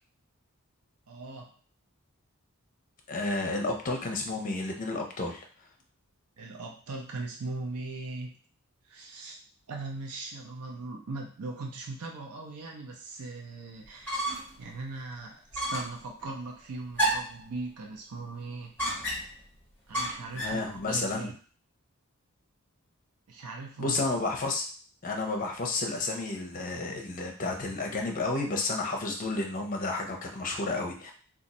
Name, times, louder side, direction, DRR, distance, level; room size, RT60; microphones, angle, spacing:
voice 1, 1.1-1.5 6.4-8.4 8.9-9.4 9.7-14.2 14.6-18.7 19.9-21.3 23.3-24.0, right 3 dB, 85° right, 0 dB, 0.6 m, -39 dB
voice 2, 3.1-5.4 20.3-21.3 23.8-24.6 25.0-31.1, left 3 dB, 35° left, 2 dB, 0.6 m, -31 dB
sound 1, 13.9-14.6 14.9-15.0 15.5-16.0 17.0-17.4 18.8-19.4 19.9-20.6, right 1 dB, 10° left, 1.3 m, -31 dB
2.5 x 2.4 x 4.1 m, 0.43 s
head